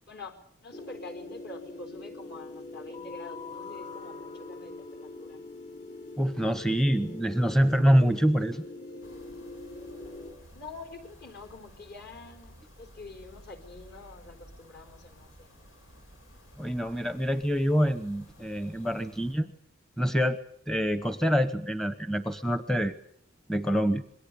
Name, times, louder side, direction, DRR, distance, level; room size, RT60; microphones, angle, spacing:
voice 1, 0.1-5.4 10.5-15.5, left 3 dB, 55° left, 6 dB, 4.5 m, -46 dB
sound 1, 0.7-10.3, left 2 dB, 40° left, 5.2 m, -43 dB
voice 2, 6.2-8.6 16.6-19.5 20.0-20.4 20.7-23.0 23.5-24.0, equal, ahead, 10 dB, 0.9 m, -25 dB
sound 2, 9.0-19.3, equal, 90° left, 7.5 m, -54 dB
27.5 x 22.0 x 6.9 m, 0.66 s
head